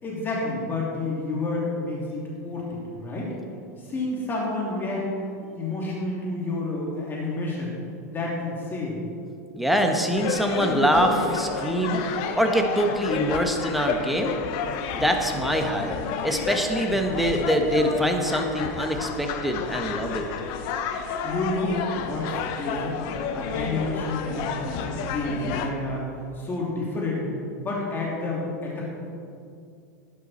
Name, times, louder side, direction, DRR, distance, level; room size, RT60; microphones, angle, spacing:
voice 1, 0.0-3.4 3.8-5.1 5.5-7.7 8.1-9.0 21.2-23.0 23.3-27.3 27.6-29.0, left 2 dB, 25° left, -4 dB, 3.1 m, -29 dB
voice 2, 9.5-12.0 12.3-14.3 15.0-16.0 16.2-20.2, equal, ahead, 3 dB, 1.4 m, -24 dB
sound 1, 10.2-25.7, left 6 dB, 55° left, 1.1 m, -31 dB
12.0 x 10.5 x 4.4 m, 2.4 s
hypercardioid pair, 100°, 9 cm